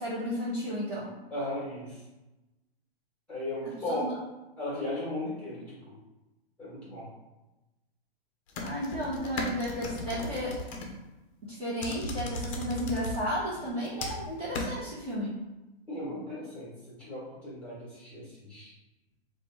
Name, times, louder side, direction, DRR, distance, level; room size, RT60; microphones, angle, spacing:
voice 1, 0.0-1.1 3.9-4.2 8.5-10.6 11.4-15.4, equal, 20° right, -12 dB, 1.1 m, -33 dB
voice 2, 1.3-2.0 3.3-4.1 4.6-5.9 6.6-7.1 15.9-18.7, left 1 dB, 5° left, -8 dB, 1.4 m, -36 dB
sound 1, 8.5-10.9 11.8-13.2 13.5-14.3 14.5-14.7, left 2 dB, 35° left, 0.6 m, -36 dB
3.2 x 2.5 x 4.3 m, 1.0 s
hypercardioid pair, 155°, 31 cm